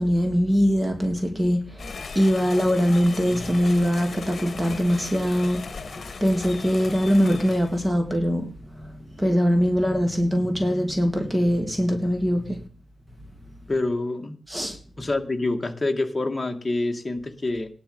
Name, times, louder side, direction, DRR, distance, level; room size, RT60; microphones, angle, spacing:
voice 1, 0.0-5.9 6.2-12.6 14.5-14.8, equal, 15° right, 3.0 m, -22 dB
sound 1, 1.8-7.9, left 4 dB, 55° left, 1.6 m, -38 dB
voice 2, 13.7-14.4 15.0-17.7, left 2 dB, 25° left, 2.2 m, -26 dB
17.0 x 11.5 x 5.6 m
wide cardioid pair, 80°, 0 cm